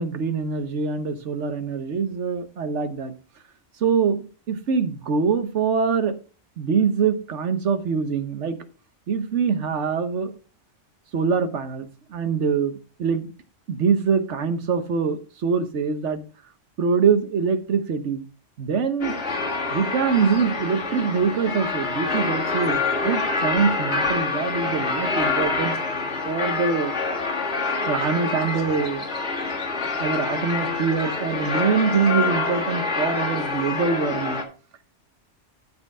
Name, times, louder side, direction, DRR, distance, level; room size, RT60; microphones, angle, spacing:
voice 1, 0.0-3.2 3.8-6.2 6.6-8.6 9.1-10.4 11.1-13.3 13.7-16.2 16.8-18.2 18.6-19.2 19.7-25.7 26.2-26.9 27.8-29.0 30.0-34.4, right 5 dB, 70° right, 9 dB, 1.3 m, -24 dB
sound 1, 19.0-34.4, left 3 dB, 65° left, 2.1 m, -26 dB
12.5 x 4.5 x 4.9 m, 0.38 s
omnidirectional pair, 1.3 m